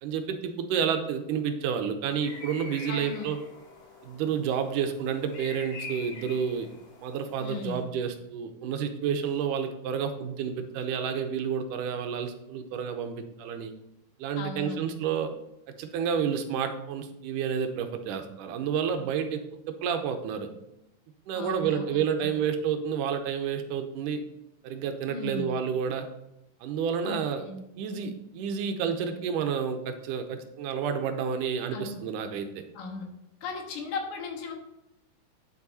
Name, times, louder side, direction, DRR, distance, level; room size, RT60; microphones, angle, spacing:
voice 1, 0.0-3.4 4.0-6.7 7.0-13.7 14.2-15.3 15.8-19.4 19.7-20.5 21.3-24.2 24.6-26.1 26.6-27.4 27.8-32.6, right 7 dB, 80° right, 7 dB, 2.3 m, -30 dB
sound 1, 2.1-7.8, left 3 dB, 65° left, 5.1 m, -45 dB
voice 2, 2.9-3.3 7.4-7.9 14.4-14.8 21.3-22.3 25.1-25.5 27.0-27.6 31.7-32.0 32.7-33.1 33.4-34.5, left 4 dB, 85° left, 3 dB, 3.1 m, -37 dB
9.7 x 7.2 x 4.1 m, 0.87 s
omnidirectional pair, 3.7 m